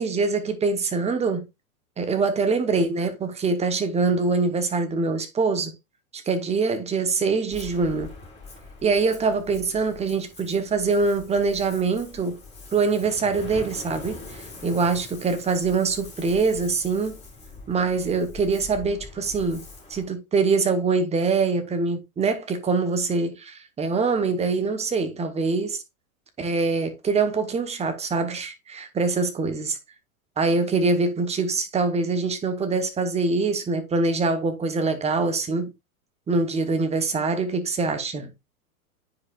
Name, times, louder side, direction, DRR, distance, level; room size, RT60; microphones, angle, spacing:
voice 1, 0.0-1.5 2.0-5.7 6.3-8.1 8.8-12.4 12.7-17.2 17.7-19.6 19.9-25.8 26.4-29.7 30.4-35.7 36.3-38.3, right 4 dB, 15° right, 1.0 m, -24 dB
Ocean, 7.5-20.0, left 3 dB, 15° left, 3.3 m, -43 dB
9.6 x 4.9 x 2.4 m
hypercardioid pair, 120°, 44 cm